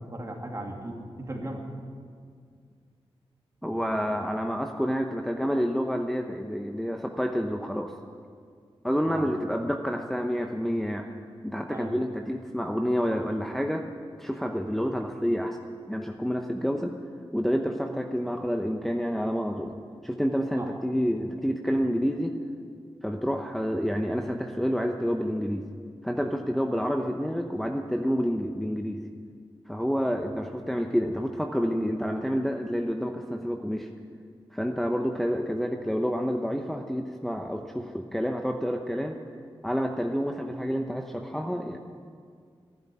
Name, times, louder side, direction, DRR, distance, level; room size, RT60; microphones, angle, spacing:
voice 1, 0.0-1.6 9.1-9.3 11.7-11.9 20.6-20.7, right 1 dB, 30° right, 0 dB, 2.5 m, -37 dB
voice 2, 3.6-7.9 8.8-11.1 11.4-13.8 14.2-15.6 15.9-16.9 17.3-19.7 20.0-22.3 23.0-25.6 26.0-29.0 29.7-33.9 34.5-39.2 39.6-41.8, equal, ahead, 3 dB, 0.8 m, -28 dB
12.0 x 11.0 x 9.6 m, 2.1 s
wide cardioid pair, 80°, 10 cm